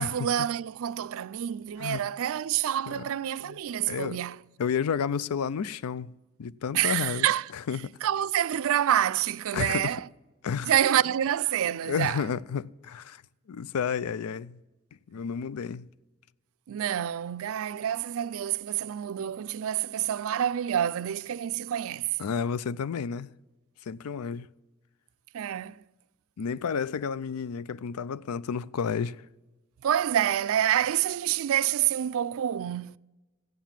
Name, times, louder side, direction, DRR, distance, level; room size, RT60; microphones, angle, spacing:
voice 1, 0.0-4.4 6.7-7.5 8.0-10.1 10.7-12.2 16.7-22.2 25.3-25.8 29.8-33.0, right 10 dB, 65° right, 0.4 m, -27 dB
voice 2, 3.9-4.2 4.6-6.1 6.4-7.3 7.7-7.9 9.5-9.9 10.4-10.7 11.9-13.2 13.5-14.6 15.1-15.9 22.2-23.3 23.9-24.5 26.4-29.2, left 6 dB, 90° left, 0.4 m, -31 dB
14.5 x 9.2 x 7.3 m
head